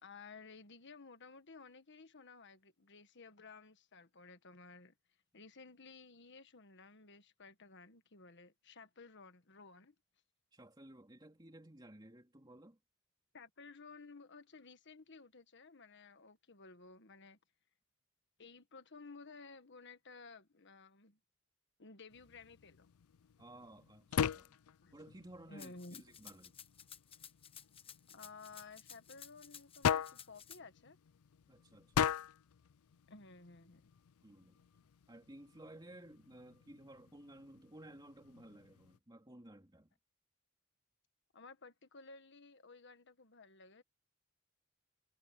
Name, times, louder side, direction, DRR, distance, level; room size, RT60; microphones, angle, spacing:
voice 1, 0.0-4.9 5.3-9.9 13.3-17.4 18.4-21.2 21.8-22.9 24.8-24.9 25.5-26.0 28.1-31.0 33.1-33.9 41.3-43.8, left 4 dB, 55° left, 1.5 m, -55 dB
voice 2, 10.5-12.8 23.4-24.5 24.9-26.5 31.5-32.1 34.2-34.6 35.1-39.9, right 1 dB, 20° right, 3.4 m, -56 dB
sound 1, 22.1-39.0, left 8 dB, 90° left, 0.4 m, -42 dB
Rattle (instrument), 25.6-30.6, left 8 dB, 25° left, 1.1 m, -54 dB
head